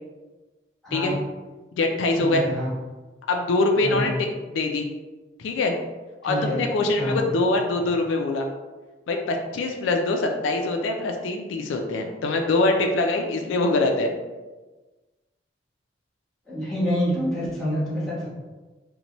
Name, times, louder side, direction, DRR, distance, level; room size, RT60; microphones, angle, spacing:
voice 1, 0.8-1.2 2.2-2.7 3.8-4.1 6.2-6.6 7.0-7.3 16.5-18.3, equal, 5° left, -10 dB, 1.0 m, -27 dB
voice 2, 1.7-2.4 3.3-4.1 4.6-4.9 5.4-5.8 6.2-8.5 9.1-14.1, left 2 dB, 85° left, 3 dB, 0.3 m, -23 dB
2.7 x 2.1 x 2.9 m, 1.2 s
head